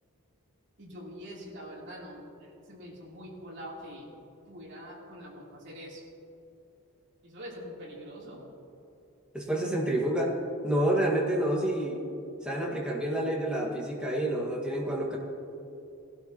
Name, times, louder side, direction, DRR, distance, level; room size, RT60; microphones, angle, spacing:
voice 1, 0.8-4.1 4.5-6.0 7.2-8.5, equal, 55° right, -6 dB, 3.5 m, -44 dB
voice 2, 9.3-10.4 10.6-12.0 12.4-15.2, right 1 dB, 5° right, -4 dB, 1.9 m, -28 dB
19.5 x 12.5 x 3.1 m, 2.9 s
head